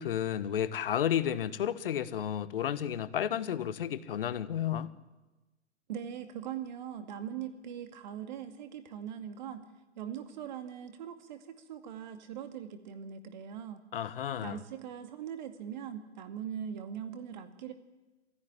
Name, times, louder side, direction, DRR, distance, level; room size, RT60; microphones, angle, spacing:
voice 1, 0.0-4.9 13.9-14.6, left 10 dB, 50° left, 1.3 m, -32 dB
voice 2, 5.9-9.6 10.0-13.8 14.4-17.7, right 9 dB, 40° right, 2.3 m, -41 dB
22.5 x 16.0 x 9.9 m
hypercardioid pair, 150°, 35 cm